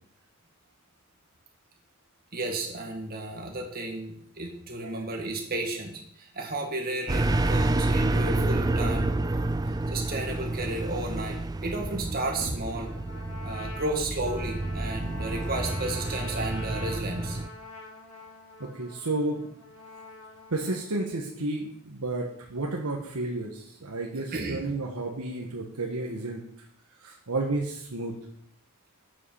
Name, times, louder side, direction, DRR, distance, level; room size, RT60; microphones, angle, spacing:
voice 1, 2.3-9.2 9.9-12.9 13.4-17.4 24.1-24.6, right 2 dB, 45° right, 1 dB, 2.0 m, -33 dB
sound 1, 7.1-17.5, right 2 dB, 15° right, 0.4 m, -29 dB
sound 2, 12.4-16.3, right 1 dB, 30° left, 3.5 m, -45 dB
Trumpet, 12.8-20.9, left 2 dB, 70° left, 2.1 m, -44 dB
voice 2, 18.6-19.4 20.5-26.4 27.0-28.2, right 2 dB, 85° right, 0 dB, 1.3 m, -32 dB
8.4 x 7.7 x 5.6 m, 0.69 s
head